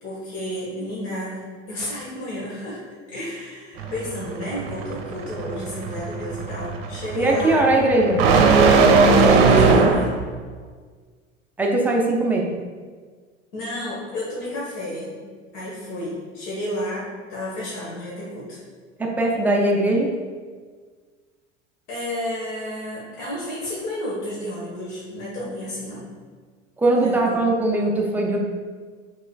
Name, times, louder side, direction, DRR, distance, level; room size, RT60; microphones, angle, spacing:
voice 1, 0.0-2.8 3.1-7.6 9.2-10.2 13.5-15.2 15.5-18.6 21.9-26.1 27.0-27.4, left 1 dB, 55° left, -7 dB, 1.4 m, -31 dB
sound 1, 3.8-10.2, right 4 dB, 50° right, 0.6 m, -18 dB
voice 2, 7.1-8.2 11.6-12.5 19.0-20.1 26.8-28.4, right 2 dB, 5° right, -1 dB, 0.3 m, -20 dB
6.0 x 3.0 x 2.3 m, 1.5 s
figure-of-eight pair, 80°, 38 cm